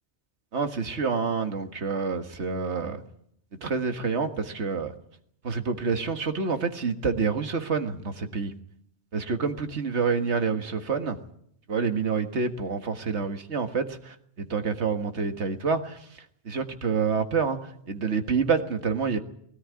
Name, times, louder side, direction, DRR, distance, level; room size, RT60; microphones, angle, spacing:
voice 1, 0.5-3.0 3.6-4.9 5.4-8.5 9.1-11.2 11.7-19.2, right 5 dB, 80° right, 7 dB, 1.9 m, -28 dB
20.5 x 18.0 x 9.6 m, 0.70 s
omnidirectional pair, 1.1 m